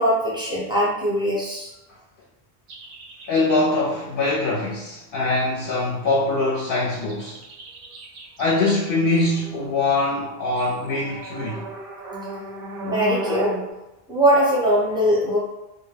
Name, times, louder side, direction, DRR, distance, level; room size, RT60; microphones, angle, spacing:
voice 1, 0.0-1.7 12.8-13.5 14.1-15.4, equal, 5° right, -7 dB, 0.6 m, -21 dB
sound 1, 2.7-3.6 6.8-13.7, right 1 dB, 65° right, 0.7 m, -35 dB
voice 2, 3.3-7.4 8.4-11.6, left 2 dB, 60° left, -5 dB, 0.7 m, -23 dB
2.2 x 2.1 x 3.2 m, 0.97 s
omnidirectional pair, 1.1 m